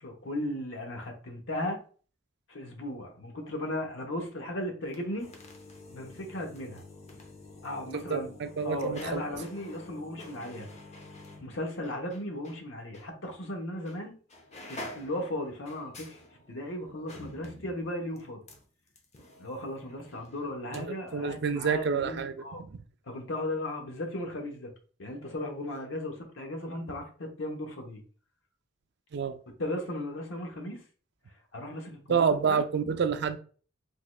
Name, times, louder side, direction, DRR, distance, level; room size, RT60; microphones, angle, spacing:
voice 1, 0.0-1.8 2.5-5.3 5.9-6.8 7.6-8.3 8.6-10.7 11.4-14.1 14.7-16.2 16.5-18.4 19.4-22.6 23.1-24.7 25.0-28.0 29.5-30.8 31.5-32.6, left 1 dB, 90° left, 2 dB, 0.9 m, -36 dB
sound 1, 4.8-12.6 12.9-13.1 13.8-14.0 14.3-20.8 21.1-21.2, left 2 dB, 35° left, 0.7 m, -48 dB
voice 2, 7.9-9.2 20.7-22.3 22.7-22.8 29.1-29.4 32.1-33.4, right 6 dB, 60° right, 10 dB, 0.4 m, -28 dB
3.6 x 3.1 x 2.3 m, 0.40 s
head